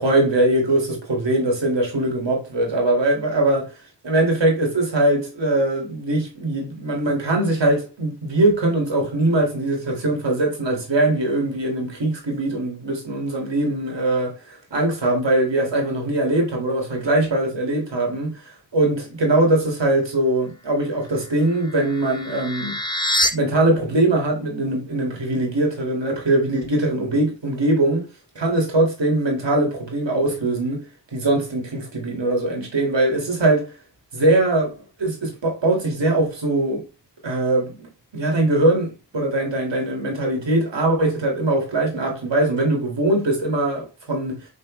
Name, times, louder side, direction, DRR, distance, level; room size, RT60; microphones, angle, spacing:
voice 1, 0.0-3.7 4.0-18.4 18.7-22.8 23.3-28.1 28.4-30.9 31.1-33.7 34.1-34.7 35.0-36.8 37.2-44.5, right 2 dB, 85° right, 1.8 m, -21 dB
sound 1, 21.1-23.3, left 1 dB, 10° left, 0.7 m, -26 dB
5.5 x 3.1 x 3.0 m
wide cardioid pair, 45°, 43 cm